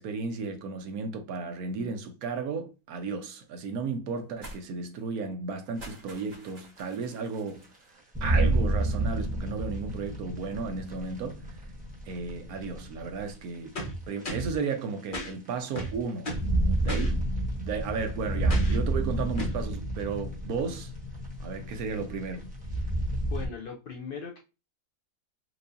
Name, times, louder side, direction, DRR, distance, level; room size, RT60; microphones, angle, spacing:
voice 1, 0.0-7.7 8.2-11.6 12.1-13.7 14.1-16.3 16.8-17.2 17.6-20.9 21.4-22.5, right 4 dB, 70° right, 1.1 m, -34 dB
sound 1, 4.4-4.6 4.9-5.1 5.6-7.9, right 1 dB, 35° right, 1.7 m, -48 dB
sound 2, 6.6-6.7 7.4-7.5 8.1-13.3 14.2-14.3 16.1-23.5, right 1 dB, 5° right, 0.9 m, -30 dB
sound 3, 13.8-14.6 15.1-15.3 15.8-16.5 16.9-17.1 18.5-18.8 19.4-19.6, equal, 35° left, 1.1 m, -34 dB
voice 2, 23.2-24.4, left 6 dB, 80° left, 0.4 m, -39 dB
4.6 x 2.6 x 2.6 m
omnidirectional pair, 1.6 m